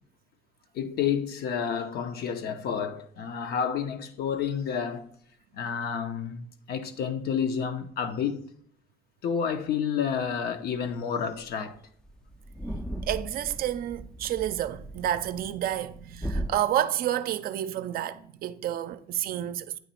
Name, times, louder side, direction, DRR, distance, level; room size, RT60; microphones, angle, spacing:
voice 1, 0.7-5.1 5.5-8.5 9.2-11.8, left 7 dB, 70° left, 0.8 m, -30 dB
sound 1, 10.9-11.0 11.2-11.4 11.7-11.8 12.0-16.5, right 1 dB, 5° left, 0.4 m, -37 dB
voice 2, 13.0-19.8, right 11 dB, 60° right, 0.5 m, -30 dB
9.0 x 3.0 x 4.3 m
cardioid pair, 110°, 17 cm